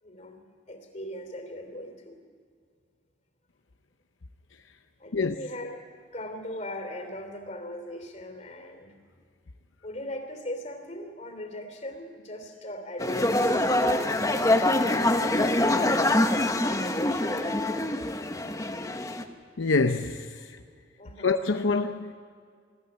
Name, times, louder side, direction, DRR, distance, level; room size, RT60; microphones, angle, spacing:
voice 1, 0.0-0.4 0.7-2.2 5.0-5.8 6.1-8.9 9.8-13.8 14.2-17.4 21.0-21.4, left 1 dB, 35° left, 3.2 m, -39 dB
sound 1, 13.0-19.2, left 1 dB, 15° left, 1.0 m, -25 dB
voice 2, 19.6-20.6 21.2-22.1, left 3 dB, 80° left, 0.7 m, -26 dB
22.0 x 14.5 x 9.5 m
head